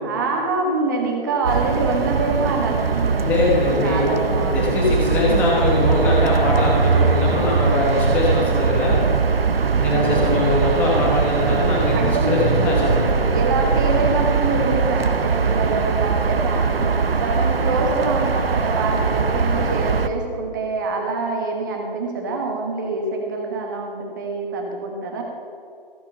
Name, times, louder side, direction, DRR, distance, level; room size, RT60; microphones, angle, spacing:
voice 1, 0.0-5.3 9.9-10.3 11.9-12.4 13.3-25.2, right 3 dB, 20° right, 1 dB, 1.3 m, -25 dB
sound 1, 1.4-20.1, right 5 dB, 85° right, 0.8 m, -21 dB
voice 2, 3.2-4.1 4.5-9.0 9.7-13.3, left 2 dB, 5° left, -4 dB, 1.0 m, -21 dB
14.5 x 7.4 x 5.5 m, 2.4 s
figure-of-eight pair, 160°, 29 cm